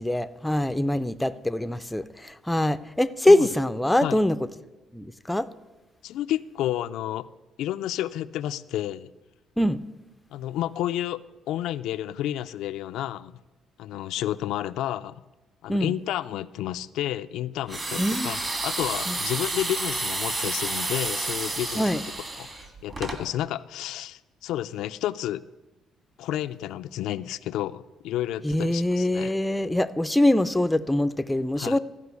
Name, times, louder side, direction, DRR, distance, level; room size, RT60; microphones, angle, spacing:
voice 1, 0.0-4.4 4.9-5.5 9.6-9.8 15.7-15.9 18.0-18.3 19.1-19.2 21.8-22.0 28.4-31.8, left 1 dB, 5° left, 12 dB, 0.4 m, -23 dB
voice 2, 6.0-7.3 7.6-9.1 10.3-11.2 11.5-13.4 13.8-15.2 15.6-18.4 18.6-22.0 22.4-25.4 26.2-29.3 31.6-31.8, left 13 dB, 85° left, 12 dB, 0.3 m, -31 dB
sound 1, 17.7-23.2, right 2 dB, 30° right, 1.6 m, -30 dB
13.5 x 5.2 x 8.1 m, 1.1 s
cardioid pair, 110°, 0 cm